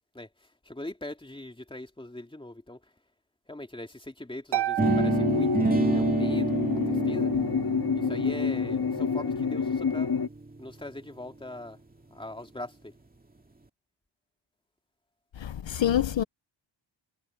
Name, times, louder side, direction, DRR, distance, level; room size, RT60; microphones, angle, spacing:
voice 1, 0.0-2.8 3.5-5.5 5.9-6.6 6.9-7.3 7.9-10.1 10.6-11.8 12.1-12.9, left 1 dB, 10° left, 2.7 m, -41 dB
Harp, 4.5-6.4, right 13 dB, 55° right, 1.7 m, -33 dB
sound 1, 4.8-10.3, left 5 dB, 45° left, 2.2 m, -28 dB
sound 2, 4.8-10.7, right 3 dB, 20° right, 2.3 m, -29 dB
voice 2, 15.4-16.2, left 11 dB, 65° left, 1.0 m, -26 dB
wide cardioid pair, 115°, 48 cm